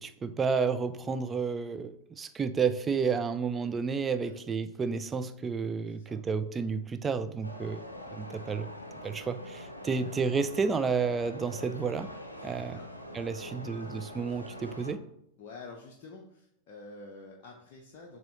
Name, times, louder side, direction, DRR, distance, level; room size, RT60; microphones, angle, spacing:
voice 1, 0.0-7.8 8.1-8.7 9.0-12.1 12.4-12.8 13.1-15.0, right 5 dB, 20° right, 11 dB, 0.3 m, -31 dB
voice 2, 5.9-6.2 9.8-10.1 12.4-12.9 13.3-13.6 15.4-18.2, left 3 dB, 45° left, 0 dB, 0.6 m, -49 dB
sound 1, 7.4-14.9, left 1 dB, 85° left, 0.5 m, -44 dB
6.8 x 2.8 x 2.6 m, 0.76 s
figure-of-eight pair, 90°, 0 cm